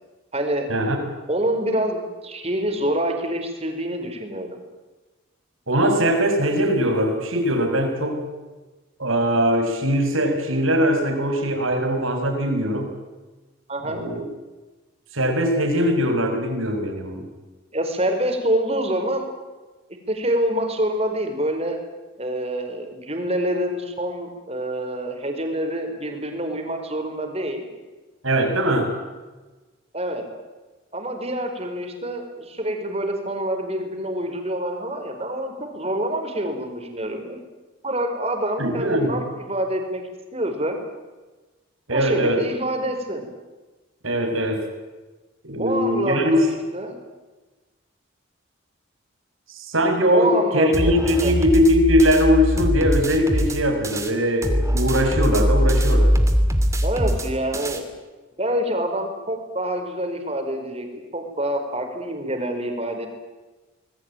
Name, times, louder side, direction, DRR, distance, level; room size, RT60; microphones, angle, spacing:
voice 1, 0.3-0.7 1.3-4.6 13.7-14.1 17.7-19.3 20.1-21.8 22.2-27.7 29.9-30.2 30.9-37.4 37.8-40.0 40.3-40.8 41.9-43.3 45.6-47.0 50.1-51.3 56.8-57.8 58.4-60.9 61.1-63.1, right 1 dB, 30° right, 4 dB, 4.7 m, -26 dB
voice 2, 5.7-8.3 9.0-12.9 13.8-14.2 15.1-17.3 28.2-28.9 38.6-39.2 41.9-42.4 44.0-44.6 45.4-46.5 49.5-56.1, equal, 85° right, 4 dB, 6.5 m, -21 dB
sound 1, 50.7-54.1 54.4-57.8, equal, 15° right, 2.6 m, -21 dB
26.0 x 21.0 x 9.2 m, 1.2 s
head